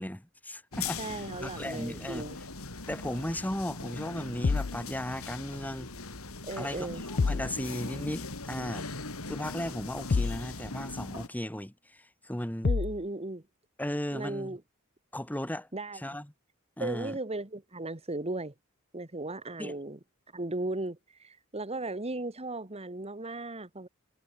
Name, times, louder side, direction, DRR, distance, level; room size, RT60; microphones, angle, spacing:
voice 1, 0.0-2.2 2.9-5.9 6.6-8.9 9.3-12.7 13.8-14.6 15.1-15.7 15.9-16.3 16.8-17.2 19.6-19.8, left 1 dB, 10° left, 2.0 m, -36 dB
sound 1, 0.7-11.3, left 3 dB, 90° left, 3.5 m, -40 dB
voice 2, 1.0-2.4 6.4-7.0 12.6-13.4 14.1-14.6 15.7-16.0 16.8-18.5 18.9-20.0 20.3-23.9, right 2 dB, 30° right, 1.9 m, -36 dB
sound 2, 4.4-4.8 7.2-7.5 10.1-10.5 12.6-13.0, left 4 dB, 40° left, 0.4 m, -27 dB
head